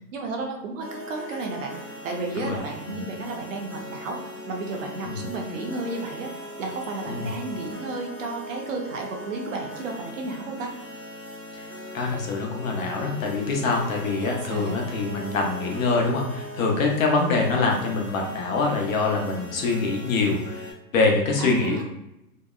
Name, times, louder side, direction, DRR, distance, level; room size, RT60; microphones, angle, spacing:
voice 1, 0.1-1.7 2.0-4.2 4.5-6.3 6.6-10.7 14.5-14.8 21.4-21.8, right 3 dB, 50° right, 1 dB, 0.6 m, -32 dB
sound 1, 0.8-20.7, left 1 dB, 5° right, 0.5 m, -39 dB
voice 2, 11.9-20.6 20.9-21.8, left 3 dB, 55° left, 0 dB, 0.7 m, -24 dB
2.7 x 2.0 x 2.3 m, 0.89 s
hypercardioid pair, 135°, 48 cm